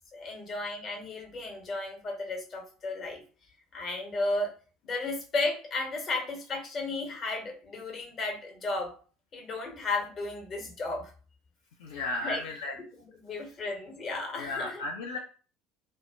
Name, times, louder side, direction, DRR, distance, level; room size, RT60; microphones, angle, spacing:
voice 1, 0.1-3.2 3.7-4.5 4.8-8.9 9.3-11.1 12.2-12.4 12.7-14.8, left 2 dB, 40° left, 2 dB, 0.8 m, -34 dB
voice 2, 11.8-12.8 14.4-15.2, left 2 dB, 65° left, 0 dB, 0.4 m, -34 dB
2.1 x 2.0 x 3.3 m, 0.38 s
figure-of-eight pair, 65°, 0 cm